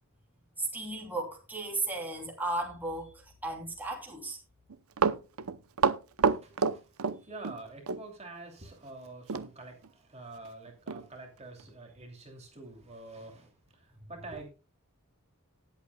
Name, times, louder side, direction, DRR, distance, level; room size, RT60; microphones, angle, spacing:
voice 1, 0.6-4.4, right 2 dB, 10° right, 2.9 m, -35 dB
Run, 4.7-7.6 7.9-8.0 9.3-9.5 9.8-9.9 10.4-10.5 10.9-11.0 11.6-11.7, right 5 dB, 85° right, 0.7 m, -28 dB
voice 2, 6.2-6.9 7.2-14.5, right 2 dB, 30° right, 2.8 m, -47 dB
19.0 x 8.2 x 2.3 m
head